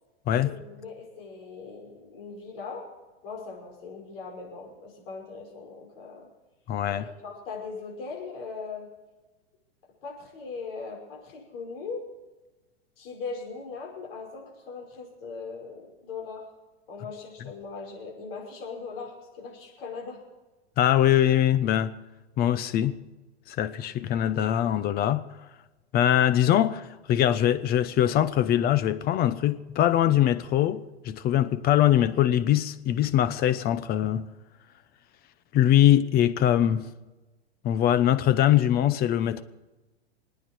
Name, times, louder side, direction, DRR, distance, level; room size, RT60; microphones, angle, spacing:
voice 1, 0.4-2.8 3.2-6.3 6.9-8.9 10.0-12.0 13.0-16.4 16.9-20.2, left 4 dB, 60° left, 5.5 m, -39 dB
voice 2, 6.7-7.0 20.8-21.9 22.4-23.0 23.5-25.2 25.9-34.2 35.5-36.9 37.6-39.4, left 11 dB, 30° left, 0.8 m, -22 dB
27.5 x 9.5 x 4.6 m
hypercardioid pair, 130°, 33 cm